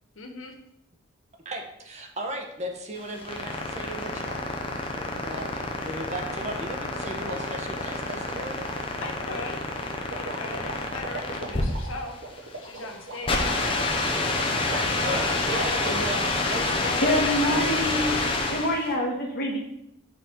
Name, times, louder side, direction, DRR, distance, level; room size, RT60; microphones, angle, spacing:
voice 1, 0.2-0.5 9.0-9.6 10.1-12.1 12.6-13.6 14.7-15.5, left 2 dB, 90° left, 3 dB, 1.0 m, -38 dB
voice 2, 1.4-4.4 4.9-8.6 15.0-17.2 17.7-17.8, right 1 dB, 35° right, 3 dB, 0.8 m, -36 dB
sound 1, 3.0-18.9, left 2 dB, 25° left, 0.7 m, -28 dB
sound 2, 6.9-16.1, right 3 dB, 75° right, 0.9 m, -39 dB
voice 3, 17.0-18.2 18.5-19.6, left 1 dB, 50° left, -1 dB, 1.5 m, -25 dB
5.5 x 4.1 x 4.4 m, 0.78 s
head